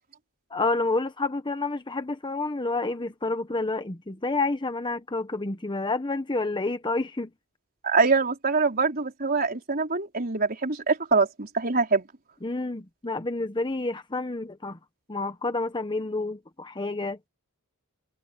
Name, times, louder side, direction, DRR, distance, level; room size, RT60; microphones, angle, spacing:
voice 1, 0.5-7.3 12.4-14.8 15.1-17.2, left 2 dB, 20° left, 1.0 m, -29 dB
voice 2, 7.8-12.1, right 4 dB, 40° right, 4.3 m, -24 dB
head